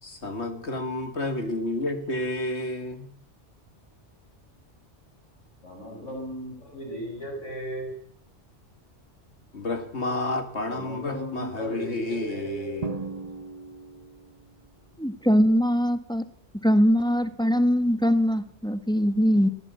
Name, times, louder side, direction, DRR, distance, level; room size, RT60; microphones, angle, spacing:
voice 1, 0.0-3.1 9.5-13.0, left 2 dB, 65° left, 7 dB, 2.4 m, -30 dB
voice 2, 5.6-7.9 10.7-12.8, equal, 85° left, 1 dB, 7.5 m, -36 dB
Drum, 12.8-14.5, right 4 dB, 35° right, 1.0 m, -37 dB
voice 3, 15.0-16.3 16.6-19.5, equal, 5° left, 11 dB, 1.3 m, -22 dB
23.5 x 16.0 x 8.4 m, 0.66 s
omnidirectional pair, 1.2 m